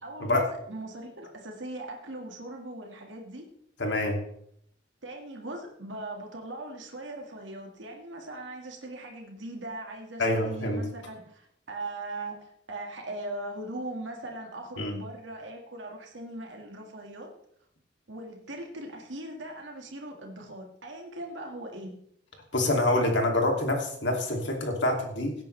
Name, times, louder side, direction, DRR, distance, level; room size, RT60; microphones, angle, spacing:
voice 1, 0.0-3.5 5.0-17.3 18.1-21.9, right 2 dB, 85° right, 2 dB, 1.9 m, -40 dB
voice 2, 3.8-4.2 10.2-10.8 14.8-14.9 22.5-25.3, left 1 dB, 70° left, 2 dB, 2.6 m, -26 dB
17.5 x 9.2 x 3.3 m, 0.69 s
head